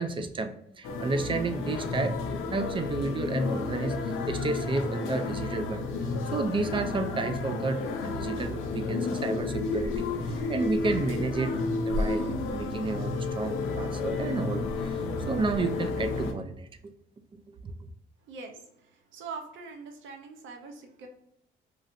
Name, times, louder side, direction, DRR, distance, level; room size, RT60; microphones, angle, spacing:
voice 1, 0.0-11.5 11.9-16.7 17.5-17.7, right 3 dB, 25° right, 8 dB, 0.4 m, -31 dB
sound 1, 0.8-16.3, left 3 dB, 85° left, 0.5 m, -31 dB
voice 2, 18.3-18.6 19.1-21.1, right 4 dB, 75° right, 3 dB, 0.6 m, -42 dB
3.1 x 2.4 x 2.5 m, 0.77 s
cardioid pair, 90°, 20 cm